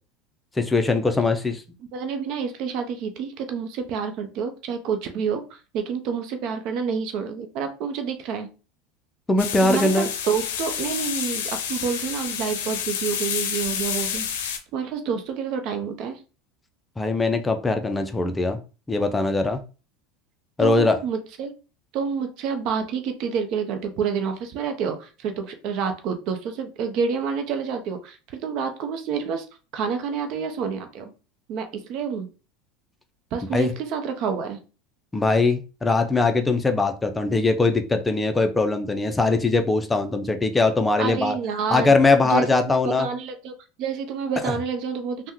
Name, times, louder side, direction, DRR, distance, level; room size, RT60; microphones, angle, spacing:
voice 1, 0.6-1.6 9.3-10.1 17.0-18.6 18.9-19.6 20.6-21.0 33.5-33.7 35.1-41.4 41.7-43.1 44.4-44.5, left 3 dB, 15° left, 6 dB, 0.4 m, -21 dB
voice 2, 1.9-8.5 9.6-16.2 20.6-21.5 21.9-29.5 29.7-31.1 31.5-32.3 33.3-34.6 41.0-41.9 42.2-45.3, right 6 dB, 55° right, 7 dB, 0.6 m, -28 dB
sound 1, 9.4-14.6, left 8 dB, 85° left, 0.5 m, -29 dB
3.4 x 2.1 x 3.0 m, 0.34 s
supercardioid pair, 105°, 0 cm